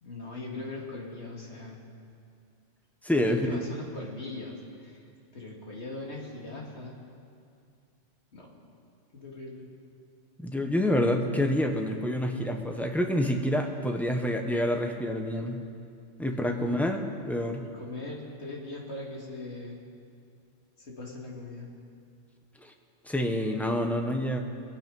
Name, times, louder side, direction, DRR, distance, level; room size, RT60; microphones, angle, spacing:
voice 1, 0.0-1.8 3.2-5.0 5.3-7.0 8.3-8.5 9.1-9.7 16.3-16.8 17.6-19.8 20.8-21.7, left 2 dB, 65° left, -2 dB, 2.5 m, -40 dB
voice 2, 3.0-3.6 10.4-15.6 16.2-17.6 23.1-24.4, left 1 dB, ahead, 3 dB, 0.9 m, -27 dB
22.5 x 8.5 x 5.4 m, 2.4 s
omnidirectional pair, 1.2 m